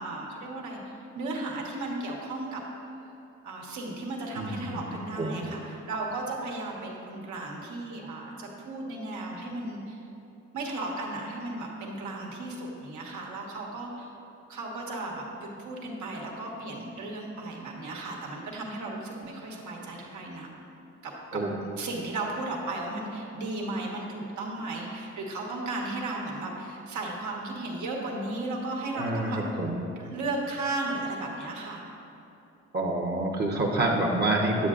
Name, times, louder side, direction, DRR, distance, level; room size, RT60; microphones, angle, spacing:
voice 1, 0.0-2.6 3.4-10.0 10.5-14.1 14.5-20.5 21.0-29.4 30.0-31.8, right 2 dB, 75° right, -1 dB, 1.3 m, -35 dB
voice 2, 4.4-4.7 5.2-5.4 21.3-21.5 28.9-29.8 32.7-34.7, right 2 dB, 35° right, 0 dB, 0.9 m, -27 dB
9.6 x 7.5 x 2.5 m, 2.9 s
cardioid pair, 90°, 30 cm